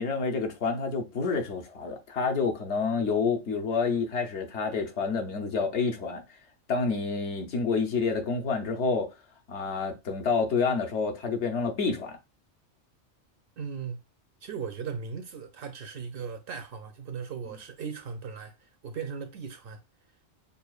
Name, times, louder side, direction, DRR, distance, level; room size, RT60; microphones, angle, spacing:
voice 1, 0.0-6.2 6.7-9.1 9.5-12.2, left 4 dB, 70° left, 1.1 m, -28 dB
voice 2, 13.6-14.0 14.4-19.8, right 6 dB, 60° right, 0.7 m, -38 dB
6.7 x 2.3 x 2.3 m
omnidirectional pair, 1.2 m